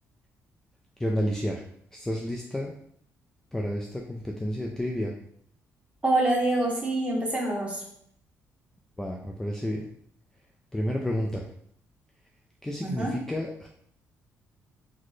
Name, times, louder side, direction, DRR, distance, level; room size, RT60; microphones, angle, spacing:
voice 1, 1.0-1.6 1.9-2.7 3.5-5.2 9.0-9.9 10.7-11.4 12.6-13.7, equal, 10° left, -1 dB, 0.3 m, -30 dB
voice 2, 6.0-7.8 12.8-13.1, right 2 dB, 20° right, -3 dB, 1.1 m, -26 dB
4.0 x 2.1 x 3.1 m, 0.67 s
cardioid pair, 120°, 5 cm